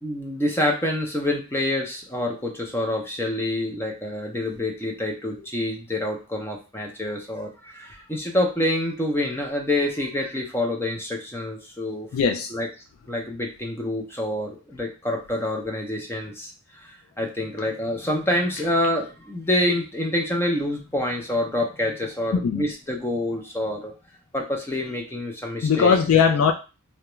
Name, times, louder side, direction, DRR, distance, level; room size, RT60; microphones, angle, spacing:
voice 1, 0.0-12.1 12.5-12.7 13.1-16.9 17.2-23.9 24.3-26.3, left 1 dB, 10° left, 1 dB, 0.5 m, -27 dB
voice 2, 12.1-12.5 22.4-22.7 25.6-26.5, left 6 dB, 75° left, 2 dB, 0.3 m, -19 dB
2.3 x 2.1 x 3.0 m, 0.32 s
head